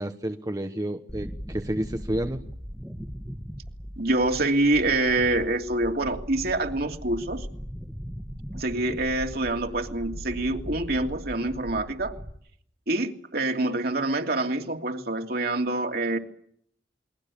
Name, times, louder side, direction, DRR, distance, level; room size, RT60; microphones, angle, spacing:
voice 1, 0.0-2.4, right 1 dB, 20° right, 6 dB, 1.1 m, -30 dB
sound 1, 1.1-12.3, equal, 5° right, 1.7 m, -39 dB
voice 2, 4.0-7.5 8.5-12.1 12.9-16.2, right 2 dB, 60° right, 3 dB, 2.9 m, -26 dB
28.5 x 22.5 x 8.6 m, 0.66 s
head